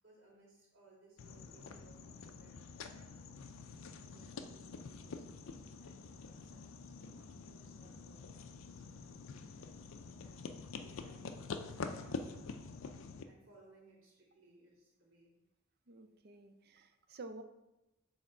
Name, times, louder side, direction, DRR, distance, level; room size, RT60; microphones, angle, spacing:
voice 1, 0.0-3.1 3.9-8.3 8.6-9.5 9.9-12.7 13.2-15.4, right 2 dB, 75° right, -5 dB, 2.2 m, -65 dB
sound 1, 1.2-13.2, left 4 dB, 65° left, 0.4 m, -47 dB
voice 2, 15.9-17.4, right 2 dB, 50° right, 8 dB, 0.5 m, -51 dB
6.5 x 3.6 x 4.4 m, 0.95 s
head